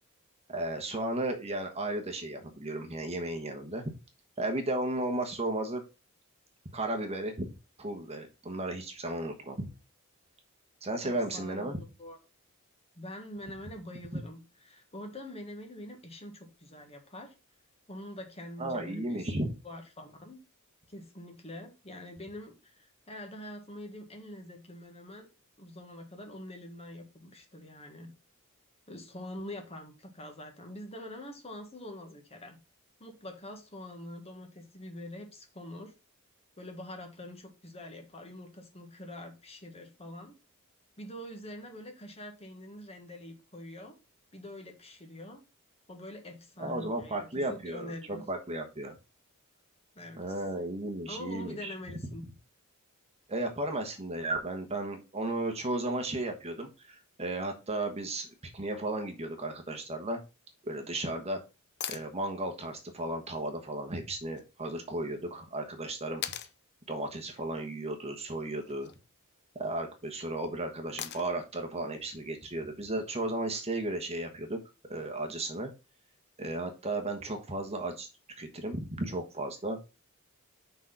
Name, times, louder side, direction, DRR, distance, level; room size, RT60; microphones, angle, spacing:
voice 1, 0.5-3.9 4.4-5.8 6.7-7.5 7.8-9.7 10.8-11.8 18.6-19.5 46.6-48.9 50.2-51.7 53.3-60.2 60.6-61.4 61.9-66.2 66.9-68.9 69.6-74.6 74.9-75.7 76.4-78.1 78.4-79.8, right 2 dB, 30° right, 4 dB, 1.2 m, -34 dB
voice 2, 11.0-12.2 12.9-17.3 17.9-19.3 19.6-20.4 20.9-25.3 25.6-28.1 28.9-32.6 33.0-35.9 36.6-40.3 41.0-43.9 44.3-45.4 45.9-48.2 49.9-50.3 51.1-52.2, left 1 dB, 30° left, 4 dB, 1.5 m, -45 dB
sound 1, 61.8-62.1 64.4-64.5 66.2-66.6 68.6-69.0 71.0-71.5 73.6-73.7, left 10 dB, 50° left, 0.6 m, -39 dB
6.1 x 4.1 x 5.6 m, 0.29 s
head